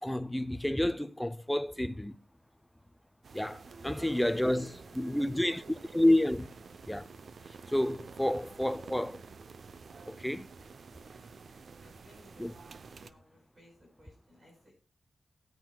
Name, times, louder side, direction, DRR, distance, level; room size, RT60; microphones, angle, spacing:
voice 1, 0.0-2.2 3.3-5.6 5.9-6.5 6.9-7.1 7.7-9.2 10.1-10.5 12.4-12.5, left 1 dB, 5° left, 0.4 m, -30 dB
sound 1, 3.2-13.1, right 5 dB, 55° right, 0.5 m, -50 dB
voice 2, 3.9-6.2 6.4-6.7 8.2-8.4 11.8-12.5 12.9-14.7, equal, 30° right, 5.1 m, -60 dB
19.5 x 9.0 x 2.2 m
wide cardioid pair, 175°, 0 cm